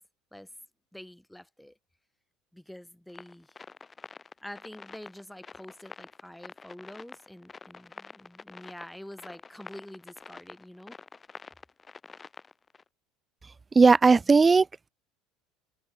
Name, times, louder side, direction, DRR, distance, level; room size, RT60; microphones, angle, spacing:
voice 1, 0.9-1.8 2.5-3.6 4.4-11.0, left 1 dB, 5° left, 4.0 m, -46 dB
sound 1, 3.1-12.8, left 4 dB, 25° left, 5.8 m, -47 dB
voice 2, 13.7-14.9, right 4 dB, 25° right, 0.3 m, -18 dB
hypercardioid pair, 70°, 0 cm